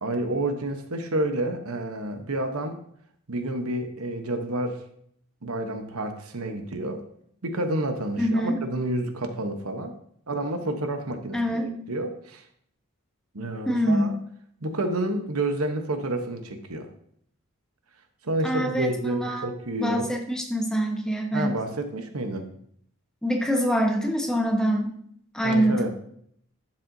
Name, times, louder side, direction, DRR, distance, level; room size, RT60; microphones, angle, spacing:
voice 1, 0.0-2.8 3.3-4.8 5.4-7.0 7.4-9.9 10.3-11.6 11.9-12.4 13.3-14.1 14.6-16.9 18.2-20.2 21.3-22.5 25.4-25.9, right 1 dB, 85° right, 6 dB, 1.0 m, -29 dB
voice 2, 8.2-8.6 11.3-11.7 13.7-14.2 18.4-19.5 19.8-21.5 23.2-24.9 25.3-25.9, equal, 5° left, 1 dB, 1.1 m, -24 dB
11.5 x 7.4 x 2.7 m, 0.67 s
head